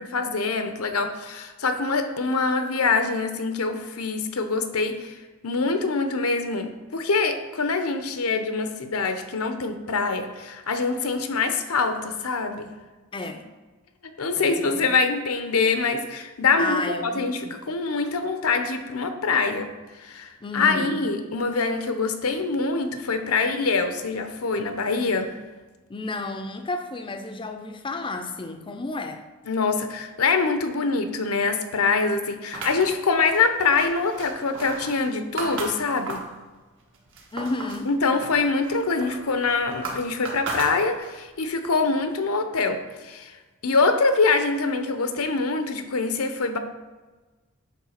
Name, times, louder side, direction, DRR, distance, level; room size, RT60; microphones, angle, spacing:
voice 1, 0.0-5.2 5.4-12.8 14.2-25.4 29.5-36.2 37.9-43.4 43.6-46.6, left 4 dB, 85° left, 7 dB, 0.8 m, -24 dB
voice 2, 13.1-13.4 14.4-15.0 16.6-17.5 20.4-21.0 25.9-29.3 37.3-37.9, left 2 dB, 25° left, 6 dB, 0.5 m, -32 dB
sound 1, 32.5-36.4 36.8-37.9 38.2-41.2, right 2 dB, 65° right, 1.4 m, -35 dB
9.3 x 3.3 x 6.4 m, 1.3 s
head